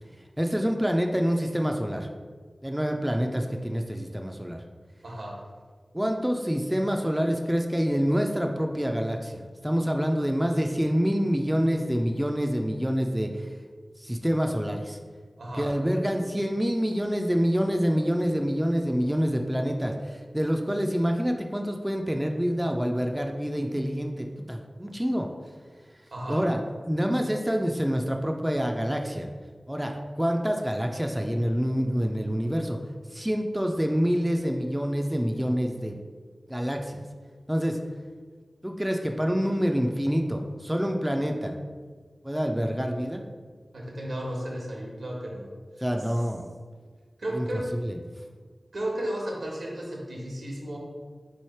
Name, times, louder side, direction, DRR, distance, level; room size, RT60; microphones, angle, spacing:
voice 1, 0.4-2.1 2.6-4.6 5.9-13.5 14.0-15.0 15.6-25.3 26.3-26.6 26.9-29.3 29.7-32.8 33.1-36.0 36.5-37.0 37.5-37.8 38.6-41.6 42.2-43.2 45.8-46.5 47.3-47.5 47.7-48.0, equal, 10° right, 2 dB, 0.4 m, -27 dB
voice 2, 5.0-5.4 15.4-15.7 26.1-26.5 43.7-45.5 47.2-47.7 48.7-50.8, right 1 dB, 85° right, -2 dB, 1.2 m, -33 dB
3.8 x 3.2 x 4.3 m, 1.5 s
wide cardioid pair, 50°, 0 cm